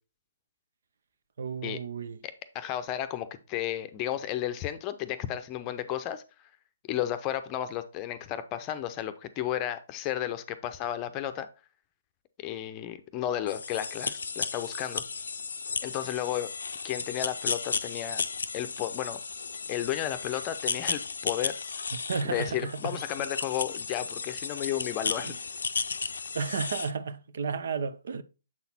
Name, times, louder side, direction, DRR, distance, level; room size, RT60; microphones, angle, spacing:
voice 1, 1.4-2.2 22.1-23.0 25.2-25.4 26.3-28.2, right 5 dB, 60° right, 0.6 m, -33 dB
voice 2, 2.2-6.2 6.9-11.5 12.4-15.2 15.8-16.5 16.8-18.2 18.5-19.2 19.7-21.6 22.2-25.3, left 12 dB, 25° left, 0.6 m, -33 dB
sound 1, 13.5-26.9, left 5 dB, 65° left, 0.5 m, -34 dB
7.3 x 4.0 x 4.2 m
figure-of-eight pair, 140°, 0 cm